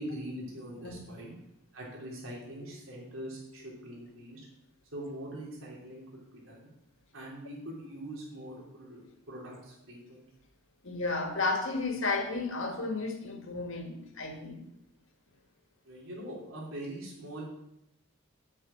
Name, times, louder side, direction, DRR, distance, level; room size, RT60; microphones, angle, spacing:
voice 1, 0.0-1.4 1.7-4.4 4.9-6.1 6.4-6.7 7.1-10.3 15.8-17.4, right 1 dB, 75° right, -4 dB, 3.3 m, -42 dB
voice 2, 10.8-14.7, left 3 dB, 70° left, 4 dB, 1.8 m, -33 dB
8.5 x 6.5 x 8.5 m, 0.82 s
head